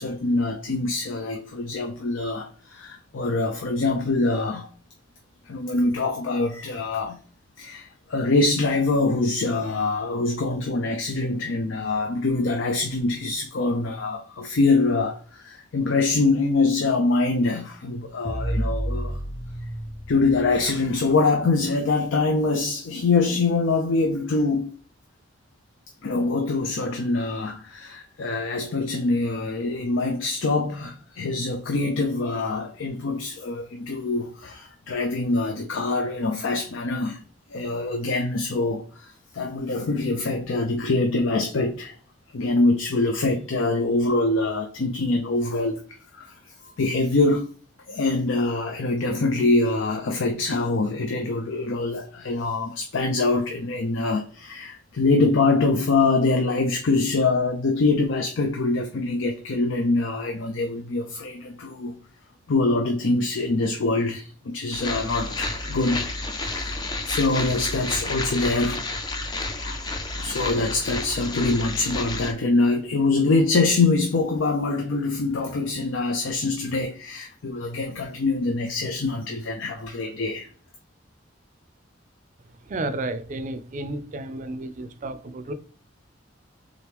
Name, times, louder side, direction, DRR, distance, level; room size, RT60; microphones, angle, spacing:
voice 1, 0.0-4.7 5.5-7.2 7.6-19.2 20.1-24.8 26.0-37.2 37.5-41.9 42.3-45.8 46.1-46.3 46.6-47.5 47.9-61.9 62.5-68.9 69.6-69.9 70.2-80.5, left 3 dB, 80° left, 0.5 m, -24 dB
sound 1, 18.2-21.3, right 1 dB, 5° left, 0.9 m, -31 dB
sound 2, 64.7-72.3, left 2 dB, 20° left, 0.4 m, -31 dB
voice 2, 82.7-85.5, right 2 dB, 40° right, 0.4 m, -32 dB
3.7 x 3.0 x 3.4 m
head